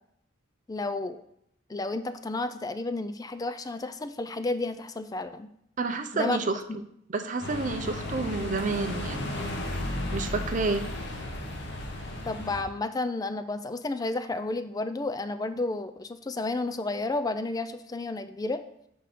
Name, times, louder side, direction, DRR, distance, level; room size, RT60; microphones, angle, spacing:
voice 1, 0.7-1.2 1.7-5.5 6.1-6.4 6.7-6.8 12.2-18.6, left 2 dB, 20° left, 11 dB, 0.4 m, -31 dB
voice 2, 5.8-6.6 7.1-9.5 10.1-10.9, right 3 dB, 40° right, 8 dB, 0.5 m, -29 dB
sound 1, 7.4-12.6, left 1 dB, 60° left, 1.1 m, -34 dB
6.5 x 5.5 x 4.2 m, 0.75 s
head